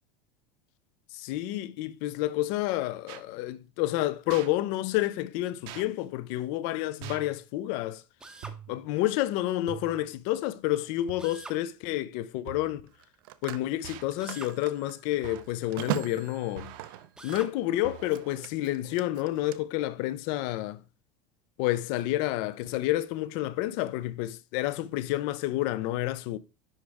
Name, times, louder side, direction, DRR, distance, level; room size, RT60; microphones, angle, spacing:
voice 1, 1.1-8.0 8.7-12.8 13.4-16.7 17.2-20.8 21.6-26.4, left 15 dB, 55° left, 0.6 m, -29 dB
sound 1, 3.1-3.3 4.3-4.5 5.7-5.9 7.0-7.4 8.4-8.8 9.7-10.1 11.1-11.5 12.5-12.9 13.8-14.2 15.2-15.6 16.6-17.1 17.8-18.4, right 10 dB, 50° right, 0.8 m, -44 dB
Drill, 8.2-8.6 11.2-11.6 14.2-14.6 17.2-17.6, right 2 dB, 5° right, 0.7 m, -45 dB
Telephone, 10.7-10.9 12.9-17.7 18.0-19.6, right 14 dB, 80° right, 0.7 m, -39 dB
10.0 x 4.7 x 3.5 m
supercardioid pair, 165°, 11 cm